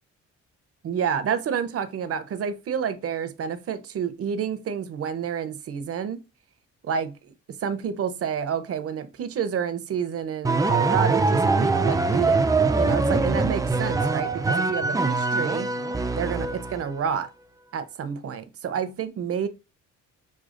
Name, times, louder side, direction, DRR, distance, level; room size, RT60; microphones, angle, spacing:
voice 1, 0.8-6.2 6.8-12.4 12.8-15.7 16.2-17.3 17.7-19.5, right 7 dB, 50° right, 0.6 m, -29 dB
sound 1, 10.4-16.9, right 3 dB, 10° right, 0.3 m, -23 dB
6.2 x 2.3 x 2.5 m
cardioid pair, 90°, 30 cm